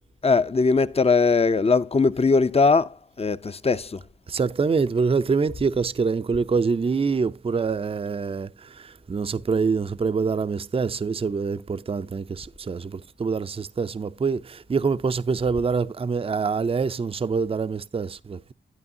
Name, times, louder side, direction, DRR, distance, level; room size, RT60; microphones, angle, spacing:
voice 1, 0.2-4.0, left 4 dB, 30° left, 0.6 m, -20 dB
voice 2, 4.3-18.5, right 5 dB, 30° right, 0.4 m, -25 dB
11.0 x 8.7 x 2.7 m
cardioid pair, 50°, 20 cm